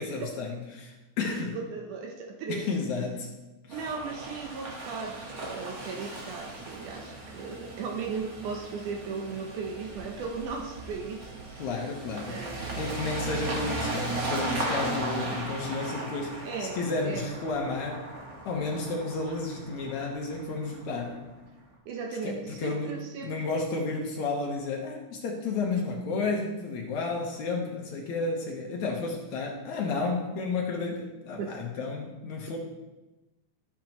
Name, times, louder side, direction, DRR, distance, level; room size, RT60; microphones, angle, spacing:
voice 1, 0.0-1.6 2.5-3.3 3.6-3.8 11.6-12.4 12.8-18.1 18.5-21.2 22.2-23.0 23.2-32.6, left 3 dB, 65° left, 0 dB, 2.0 m, -32 dB
voice 2, 1.2-2.7 3.7-11.6 12.3-12.9 16.5-16.8 17.0-17.3 21.9-23.4 31.4-31.6, right 5 dB, 70° right, 2 dB, 2.0 m, -37 dB
sound 1, 3.7-21.3, right 2 dB, 85° right, 0.7 m, -37 dB
14.0 x 6.5 x 3.0 m, 1.1 s
omnidirectional pair, 4.4 m